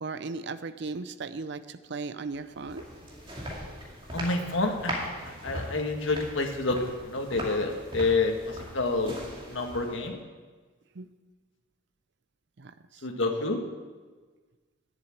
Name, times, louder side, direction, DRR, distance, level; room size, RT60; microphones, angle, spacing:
voice 1, 0.0-2.8 5.3-5.4 11.0-11.1 12.6-13.0, right 4 dB, 60° right, 11 dB, 0.5 m, -37 dB
sound 1, 2.3-10.1, equal, 25° right, 2.2 m, -40 dB
voice 2, 4.1-5.1 5.4-6.8 7.0-9.2 9.5-10.2 13.0-13.6, left 3 dB, 75° left, 3 dB, 1.6 m, -28 dB
11.0 x 7.3 x 8.5 m, 1.4 s
head